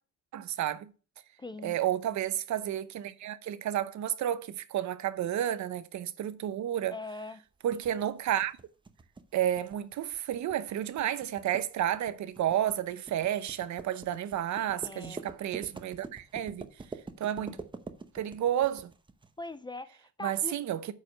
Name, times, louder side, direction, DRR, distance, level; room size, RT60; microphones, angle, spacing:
voice 1, 0.3-0.9 1.6-6.9 7.6-8.5 9.3-16.7 17.2-17.6 18.1-18.9 20.2-20.9, right 11 dB, 65° right, 0.8 m, -31 dB
voice 2, 1.4-1.8 6.9-7.4 14.8-15.3 17.4-17.6 19.4-20.5, left 3 dB, 15° left, 0.4 m, -42 dB
sound 1, 7.7-19.3, right 3 dB, 15° right, 0.7 m, -46 dB
8.6 x 5.0 x 6.4 m
cardioid pair, 130°, 31 cm